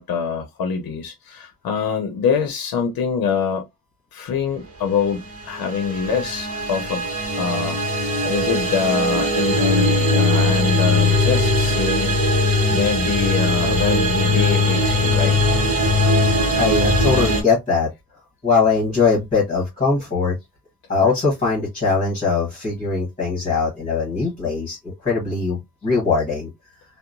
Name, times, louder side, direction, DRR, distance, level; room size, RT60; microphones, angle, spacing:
voice 1, 0.0-3.6 4.1-5.2 5.5-7.1 7.3-12.2 12.7-15.4, left 6 dB, 85° left, 0.6 m, -24 dB
sound 1, 5.2-17.4, left 1 dB, 40° right, 1.0 m, -20 dB
voice 2, 16.6-17.9 18.4-20.3 20.9-26.5, left 4 dB, 25° left, 1.1 m, -21 dB
2.8 x 2.0 x 2.4 m
wide cardioid pair, 160°, 35 cm